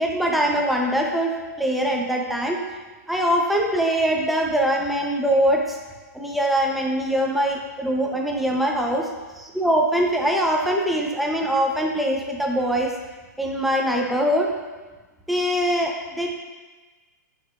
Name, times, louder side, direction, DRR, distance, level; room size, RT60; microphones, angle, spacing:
voice 1, 0.0-2.6 3.1-5.8 6.1-9.1 9.4-12.9 13.4-14.5 15.3-16.3, equal, ahead, 0 dB, 0.9 m, -22 dB
11.0 x 5.5 x 2.6 m, 1.3 s
hypercardioid pair, 125°, 10 cm